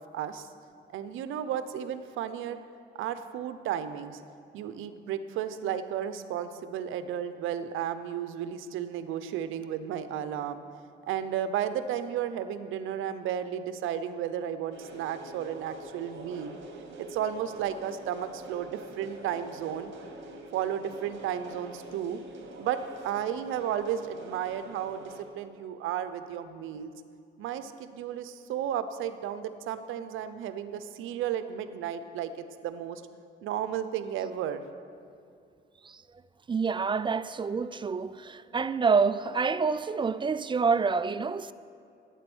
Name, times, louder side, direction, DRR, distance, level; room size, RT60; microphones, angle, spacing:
voice 1, 0.1-0.5 0.9-2.6 3.0-4.2 4.5-10.6 11.1-16.6 17.0-19.9 20.5-22.2 22.6-25.0 25.3-26.9 27.4-33.0 33.4-34.6, right 9 dB, 90° right, 0.7 m, -33 dB
sound 1, 14.7-25.2, right 2 dB, 65° right, 2.2 m, -45 dB
voice 2, 36.5-41.5, right 5 dB, 25° right, 0.4 m, -27 dB
12.5 x 9.1 x 6.2 m
cardioid pair, 90°, 20 cm